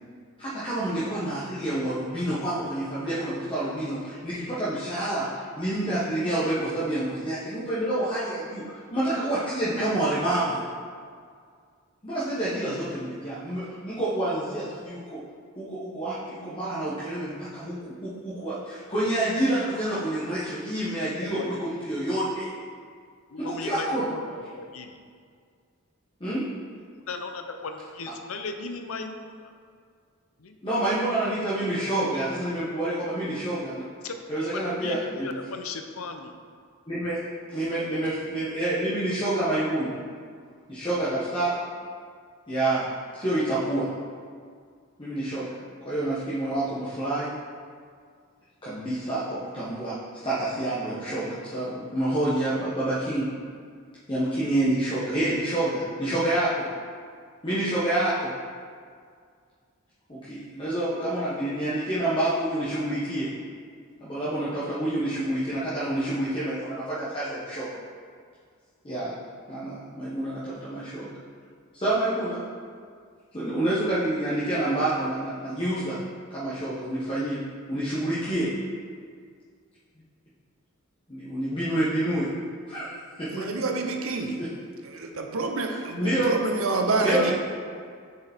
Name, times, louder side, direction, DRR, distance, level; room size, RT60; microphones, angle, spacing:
voice 1, 0.4-8.6 8.9-10.6 12.0-15.2 15.6-22.5 23.4-24.0 26.2-26.4 30.6-33.8 34.3-35.3 36.9-37.2 37.5-39.9 40.7-41.6 42.5-42.9 43.1-43.9 45.0-45.5 45.8-47.3 48.6-50.0 50.2-53.3 54.1-56.7 57.4-58.3 60.1-63.3 64.0-67.7 68.8-69.1 69.5-71.2 71.7-72.4 73.3-76.0 76.3-77.4 77.7-78.5 81.1-82.3 82.7-83.5 84.4-84.5 85.7-86.3 87.0-87.3, right 1 dB, 25° left, -10 dB, 1.2 m, -28 dB
voice 2, 23.3-25.0 27.1-29.5 30.4-30.6 34.0-34.2 34.5-36.3, left 4 dB, 85° left, 6 dB, 0.6 m, -37 dB
voice 3, 83.3-84.4 84.8-87.3, right 3 dB, 85° right, 3 dB, 0.8 m, -27 dB
6.6 x 5.0 x 4.4 m, 2.1 s
head